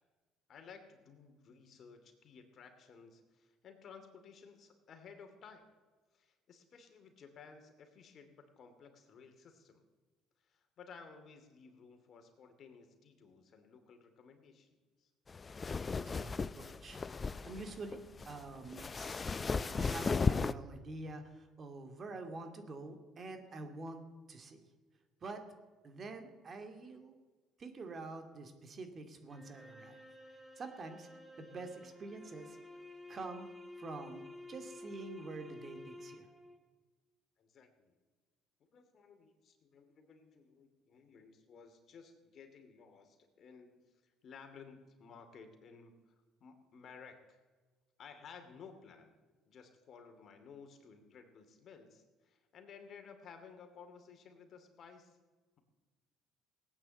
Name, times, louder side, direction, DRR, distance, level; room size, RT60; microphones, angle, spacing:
voice 1, 0.5-5.7 6.1-9.8 10.4-15.1 37.4-37.9 38.7-43.9 44.2-45.9 46.4-47.4 48.0-49.1 49.5-55.2, left 6 dB, 50° left, 6 dB, 2.6 m, -56 dB
sound 1, 15.3-20.5, left 4 dB, 30° left, 0.5 m, -35 dB
voice 2, 16.0-24.7 25.2-25.4 25.8-27.2 27.6-30.0 30.6-31.1 31.4-32.6 33.1-33.5 33.8-36.3, right 3 dB, 40° right, 6 dB, 2.4 m, -47 dB
sound 2, 29.3-36.6, left 2 dB, 5° right, 2.7 m, -52 dB
17.5 x 9.0 x 7.9 m, 1.3 s
supercardioid pair, 85°, 0 cm